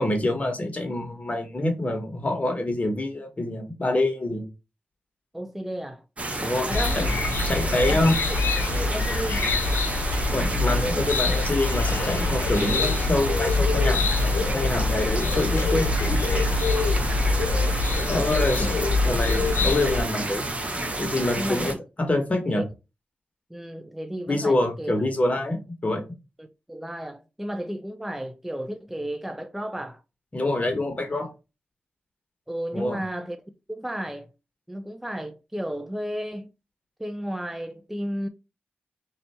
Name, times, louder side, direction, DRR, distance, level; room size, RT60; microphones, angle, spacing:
voice 1, 0.0-4.4 6.4-7.1 7.5-8.1 10.3-16.2 18.1-20.4 21.0-22.6 24.3-26.0 30.3-31.3 32.7-33.0, left 2 dB, 35° left, 1.3 m, -26 dB
voice 2, 5.3-6.0 6.7-7.1 7.9-8.4 8.7-9.5 21.4-21.8 22.5-22.6 23.5-24.9 26.4-30.0 32.5-33.4 33.7-34.3 34.7-36.5 37.0-38.3, equal, 5° right, 0.4 m, -33 dB
sound 1, 6.2-21.7, right 2 dB, 35° right, 0.9 m, -30 dB
sound 2, 6.7-20.0, left 3 dB, 90° left, 0.6 m, -25 dB
3.3 x 2.7 x 4.2 m
cardioid pair, 65°, 4 cm